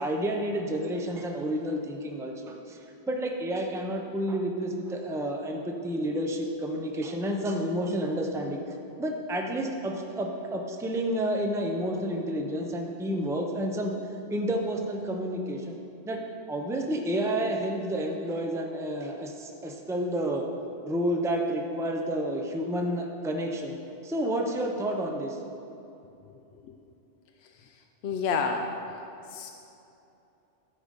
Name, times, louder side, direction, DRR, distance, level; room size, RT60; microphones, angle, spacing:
voice 1, 0.0-2.8 3.1-8.6 9.0-13.9 14.3-15.8 16.1-16.2 16.5-20.4 20.8-23.8 24.0-25.4, right 1 dB, 5° right, 2 dB, 0.6 m, -30 dB
voice 2, 28.0-28.7 29.3-29.5, left 5 dB, 80° left, 4 dB, 0.9 m, -29 dB
13.5 x 5.0 x 5.2 m, 2.8 s
omnidirectional pair, 1.1 m